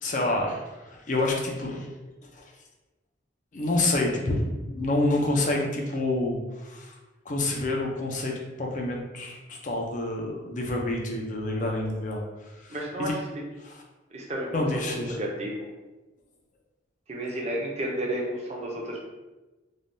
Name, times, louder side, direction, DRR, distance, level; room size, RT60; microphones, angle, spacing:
voice 1, 0.0-1.9 2.3-2.5 3.5-6.9 7.3-12.2 12.6-13.1 13.6-13.8 14.5-15.2, left 2 dB, 40° left, 0 dB, 0.5 m, -28 dB
voice 2, 12.7-13.1 14.1-14.8 15.1-15.7 17.1-19.1, right 1 dB, 35° right, -2 dB, 0.5 m, -32 dB
3.3 x 2.2 x 2.6 m, 1.1 s
head